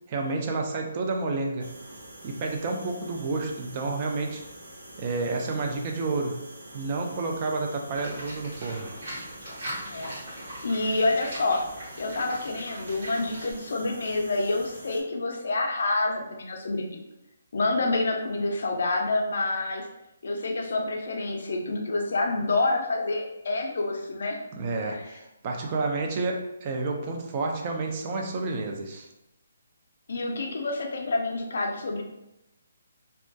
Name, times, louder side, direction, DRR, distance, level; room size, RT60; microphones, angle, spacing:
voice 1, 0.1-1.7 2.2-4.4 5.0-6.4 6.7-8.9 24.5-29.1, right 3 dB, 30° right, 2 dB, 0.3 m, -30 dB
sound 1, 1.6-15.0, right 1 dB, 85° right, 0.6 m, -46 dB
Livestock farm animals working animals, 7.9-13.5, equal, 55° right, 1.1 m, -40 dB
voice 2, 10.6-11.7 12.0-17.0 17.5-19.9 20.2-24.4 24.9-25.0 30.1-32.0, left 2 dB, 65° left, 1 dB, 0.4 m, -28 dB
2.2 x 2.2 x 2.6 m, 0.89 s
hypercardioid pair, 170°, 0 cm